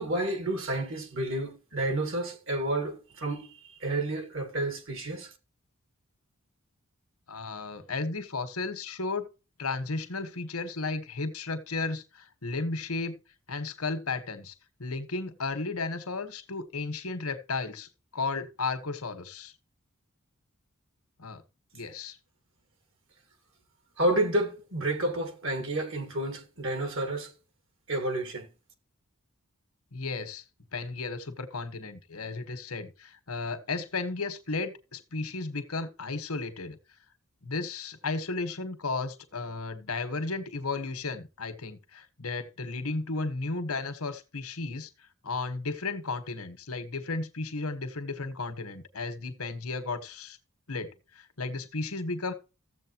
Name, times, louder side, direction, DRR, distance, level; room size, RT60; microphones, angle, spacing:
voice 1, 0.0-5.3 24.0-27.3 27.9-28.5, right 1 dB, 60° right, 2.0 m, -30 dB
voice 2, 7.3-9.3 9.6-13.2 13.5-14.5 14.8-19.5 21.2-21.4 21.7-22.2 29.9-30.4 30.7-36.8 37.4-44.9 45.2-50.4 50.7-52.3, left 3 dB, 85° left, 1.5 m, -34 dB
14.5 x 7.8 x 3.0 m
head